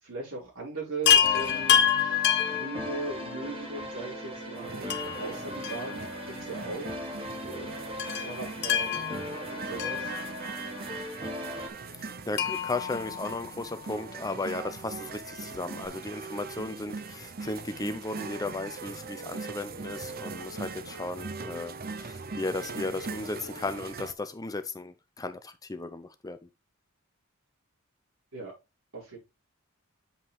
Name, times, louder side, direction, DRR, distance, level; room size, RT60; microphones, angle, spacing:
voice 1, 0.0-6.9 7.4-7.7 8.2-9.0 9.5-10.1 28.3-28.5 28.9-29.2, right 3 dB, 70° right, 5.4 m, -39 dB
Chime, 1.1-3.5 4.9-6.4 6.7-6.8 8.0-10.7 12.4-14.0 15.5-15.6 15.9-16.0, left 9 dB, 55° left, 0.7 m, -28 dB
sound 1, 1.2-11.7, equal, 25° right, 1.5 m, -39 dB
sound 2, 4.6-24.1, right 4 dB, 45° right, 0.7 m, -41 dB
voice 2, 12.0-26.4, left 2 dB, 15° left, 0.5 m, -35 dB
8.0 x 5.2 x 3.5 m
head